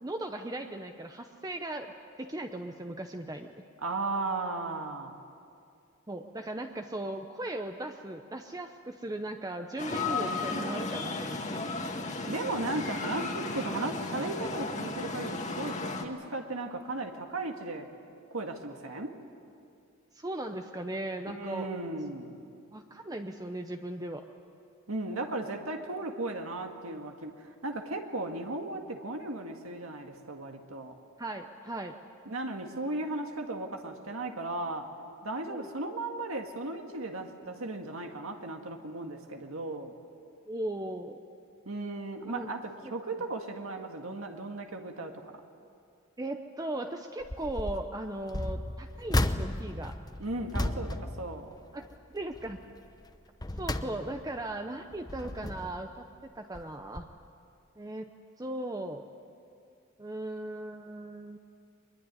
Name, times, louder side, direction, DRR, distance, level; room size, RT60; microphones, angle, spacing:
voice 1, 0.0-3.5 6.1-11.6 20.1-21.7 22.7-24.2 31.2-31.9 35.5-35.7 40.5-41.2 42.3-42.5 42.8-42.9 46.2-49.9 51.7-51.9 52.1-52.6 53.6-57.1 57.8-58.1 58.4-59.1 60.0-61.4, right 1 dB, 15° right, 5 dB, 0.8 m, -38 dB
voice 2, 3.8-5.2 12.3-17.9 18.3-19.2 21.3-22.4 24.9-31.0 32.3-34.9 35.2-39.9 41.7-45.4 50.2-51.5, right 2 dB, 75° right, 3 dB, 1.9 m, -36 dB
sound 1, 9.8-16.0, left 3 dB, 35° left, 1.8 m, -34 dB
sound 2, 47.2-47.9 48.3-52.0 52.3-52.6 53.1-54.4 54.9-55.9 56.5-56.7 57.0-57.1, left 1 dB, 20° left, 0.8 m, -34 dB
23.5 x 21.5 x 9.7 m, 2.4 s
head